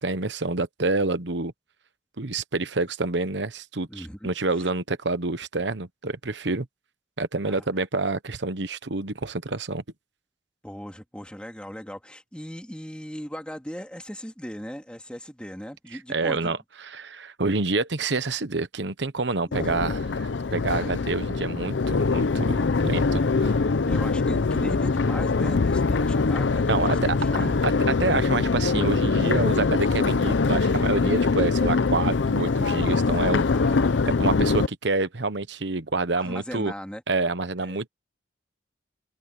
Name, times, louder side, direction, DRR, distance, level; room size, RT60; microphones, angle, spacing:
voice 1, 0.0-1.5 2.2-6.7 7.2-9.8 16.1-23.6 26.7-33.7 34.0-36.7 37.1-37.9, right 3 dB, 70° right, 1.1 m, -28 dB
voice 2, 3.9-4.3 7.4-7.6 10.6-16.5 19.5-19.6 20.6-20.9 23.4-23.5 23.8-27.6 33.5-34.3 36.2-37.0 37.6-37.8, equal, 5° left, 2.6 m, -38 dB
Crowd, 19.5-34.7, left 4 dB, 80° left, 0.6 m, -23 dB
head